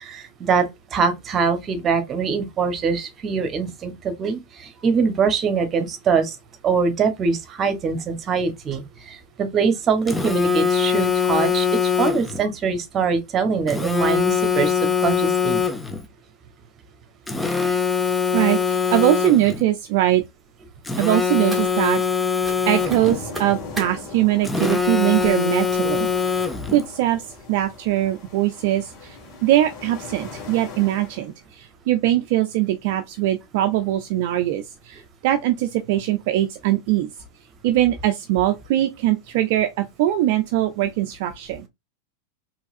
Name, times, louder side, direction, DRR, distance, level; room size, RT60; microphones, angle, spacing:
voice 1, 0.0-6.4 6.6-15.7 26.0-26.1, right 5 dB, 30° right, 1.2 m, -23 dB
Telephone, 10.1-12.4 13.7-16.0 17.3-19.6 20.9-23.2 24.4-26.8, left 6 dB, 10° left, 0.8 m, -22 dB
voice 2, 18.3-20.2 21.0-22.0 22.7-26.1 26.7-37.1 37.6-41.7, right 13 dB, 55° right, 0.5 m, -21 dB
sound 1, 21.5-22.1 22.4-22.6 22.9-23.9 24.6-24.9 25.2-25.4 25.7-26.1 26.8-26.9 27.3-27.5 27.7-27.8, right 1 dB, 10° right, 2.2 m, -36 dB
sound 2, 22.8-31.3, left 3 dB, 50° left, 2.2 m, -39 dB
4.6 x 3.5 x 2.6 m
hypercardioid pair, 95°, 0 cm